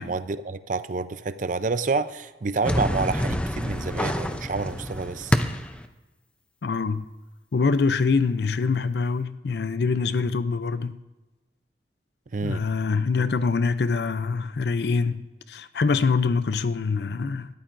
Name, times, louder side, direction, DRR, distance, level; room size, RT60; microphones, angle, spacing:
voice 1, 0.0-5.5 12.3-12.6, right 4 dB, 45° right, 0.5 m, -28 dB
sound 1, 2.6-5.8, equal, 5° left, 0.5 m, -27 dB
voice 2, 6.6-7.1 7.5-11.0 12.4-15.2 15.5-17.5, left 4 dB, 65° left, 0.4 m, -24 dB
20.0 x 13.0 x 2.6 m
head